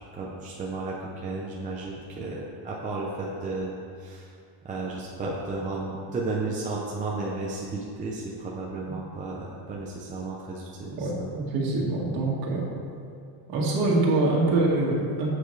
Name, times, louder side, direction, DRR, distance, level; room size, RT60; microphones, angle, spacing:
voice 1, 0.1-3.7 4.0-4.3 4.6-11.3, right 3 dB, 15° right, -4 dB, 0.6 m, -33 dB
voice 2, 10.9-12.7 13.5-15.3, right 2 dB, 45° right, -3 dB, 2.0 m, -25 dB
11.0 x 8.1 x 3.3 m, 2.3 s
cardioid pair, 170°, 50 cm